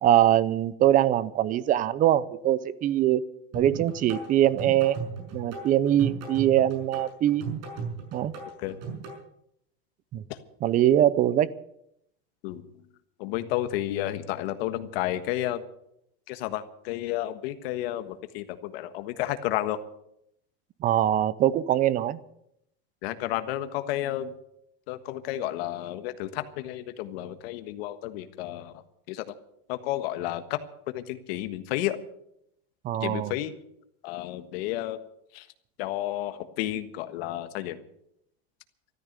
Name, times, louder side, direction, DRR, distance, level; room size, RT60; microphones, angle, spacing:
voice 1, 0.0-3.2 3.5-5.1 5.3-7.4 8.1-8.3 10.1-10.2 10.6-11.5 20.8-22.2 32.8-33.3, right 12 dB, 25° right, 18 dB, 0.6 m, -22 dB
sound 1, 3.5-9.2, right 5 dB, 50° right, 5.9 m, -36 dB
voice 2, 13.2-15.6 16.3-19.8 23.0-24.3 24.9-28.7 29.1-29.3 29.7-30.6 30.9-32.0 33.0-33.5 34.0-35.0 35.3-35.5 35.8-37.8, left 14 dB, 70° left, 9 dB, 1.5 m, -31 dB
14.0 x 13.5 x 6.7 m, 0.76 s
supercardioid pair, 165°, 32 cm